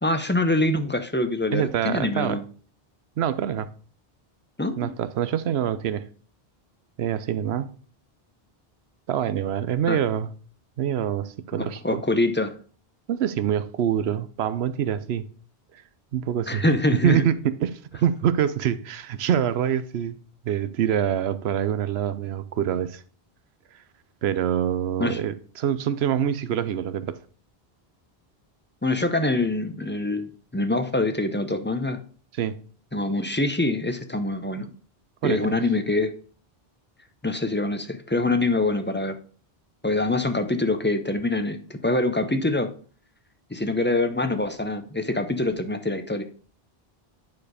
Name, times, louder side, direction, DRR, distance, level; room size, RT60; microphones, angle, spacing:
voice 1, 0.0-2.4 4.6-4.9 9.9-10.0 11.5-12.5 16.5-17.2 25.0-25.2 28.8-32.0 32.9-34.7 35.2-36.1 37.2-39.2 39.8-42.7 43.5-46.2, left 2 dB, 10° left, 0.7 m, -25 dB
voice 2, 1.5-2.4 3.2-3.7 4.8-6.1 7.0-7.7 9.1-10.3 10.8-12.0 13.1-15.3 15.7-15.8 16.1-16.6 17.0-20.2 20.4-23.0 23.7-23.8 24.2-27.2 32.4-32.6 35.2-35.6, right 9 dB, 90° right, 0.9 m, -25 dB
9.5 x 4.6 x 4.8 m
omnidirectional pair, 1.0 m